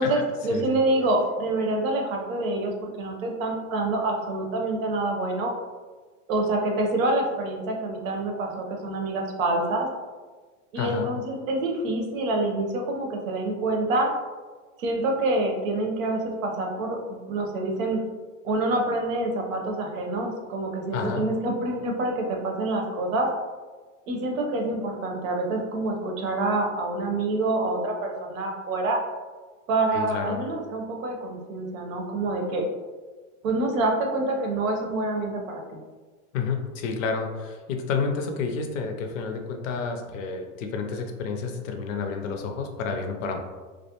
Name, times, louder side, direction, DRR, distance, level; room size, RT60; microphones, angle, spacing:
voice 1, 0.0-5.5 6.3-9.9 10.7-14.1 14.8-18.0 18.4-23.3 24.1-29.0 29.7-32.7 33.4-35.8, right 2 dB, 80° right, 2 dB, 0.7 m, -26 dB
voice 2, 10.8-11.1 20.9-21.3 29.9-30.4 36.3-43.4, left 5 dB, 75° left, 4 dB, 0.6 m, -30 dB
2.3 x 2.1 x 2.8 m, 1.4 s
supercardioid pair, 130°, 39 cm